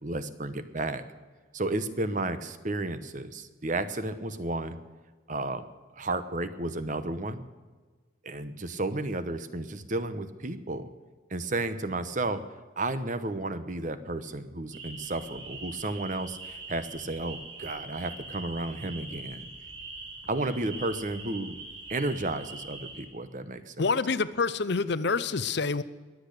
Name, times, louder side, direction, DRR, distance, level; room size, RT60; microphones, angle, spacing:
voice 1, 0.0-1.0 1.5-4.8 5.3-5.6 6.0-7.4 8.2-10.9 11.3-12.4 12.8-19.5 20.3-21.6 21.9-23.9, right 2 dB, 40° right, 11 dB, 0.9 m, -32 dB
sound 1, 14.7-23.0, right 3 dB, 70° right, 4.1 m, -43 dB
voice 2, 23.8-25.8, left 4 dB, 55° left, 15 dB, 0.6 m, -27 dB
22.0 x 8.6 x 6.7 m, 1.4 s
head